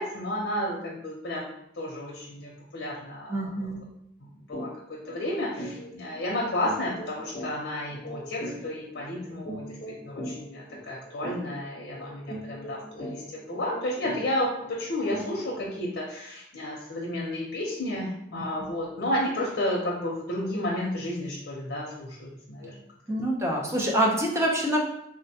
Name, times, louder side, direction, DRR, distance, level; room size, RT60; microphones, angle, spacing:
voice 1, 0.0-3.5 4.2-22.7, left 1 dB, 90° left, -3 dB, 0.6 m, -32 dB
voice 2, 3.3-3.8 18.3-18.4 23.1-24.8, right 1 dB, 15° right, -1 dB, 0.5 m, -26 dB
sound 1, 4.5-4.7 5.0-5.2 5.6-15.8, equal, 50° left, 0.7 m, -40 dB
3.6 x 2.1 x 2.7 m, 0.76 s
head